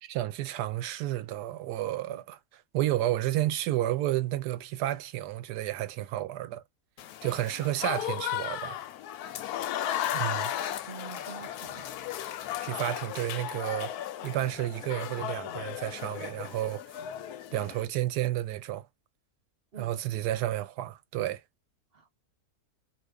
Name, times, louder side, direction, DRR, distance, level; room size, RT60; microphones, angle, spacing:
voice 1, 0.0-6.6 7.2-8.8 10.1-10.5 12.6-13.9 14.2-16.8 17.5-18.9 19.8-21.4, right 14 dB, 90° right, 1.2 m, -31 dB
Applause / Crowd, 7.0-17.9, left 11 dB, 80° left, 1.1 m, -35 dB
voice 2, 10.9-11.9 19.7-20.0 21.9-22.2, right 7 dB, 45° right, 0.9 m, -47 dB
2.7 x 2.5 x 3.3 m
omnidirectional pair, 1.7 m